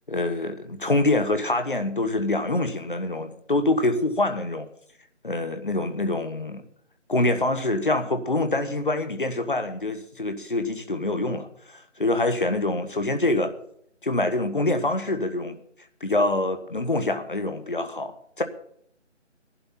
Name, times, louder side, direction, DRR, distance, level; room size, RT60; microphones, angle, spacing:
voice 1, 0.1-4.7 5.2-6.6 7.1-13.5 14.0-15.6 16.0-18.4, left 2 dB, 45° left, 8 dB, 1.5 m, -25 dB
17.5 x 11.5 x 4.3 m, 0.67 s
figure-of-eight pair, 175°, 37 cm